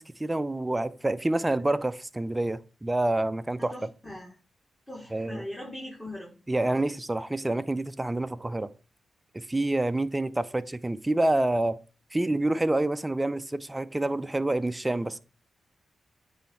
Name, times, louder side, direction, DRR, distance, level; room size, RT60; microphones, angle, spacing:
voice 1, 0.0-3.7 5.1-5.4 6.5-8.7 9.3-11.8 12.1-15.2, right 2 dB, 20° right, 0.5 m, -27 dB
voice 2, 3.6-4.4 4.9-6.3, left 1 dB, 10° left, 3.2 m, -40 dB
8.3 x 3.2 x 4.2 m
supercardioid pair, 40°, 0 cm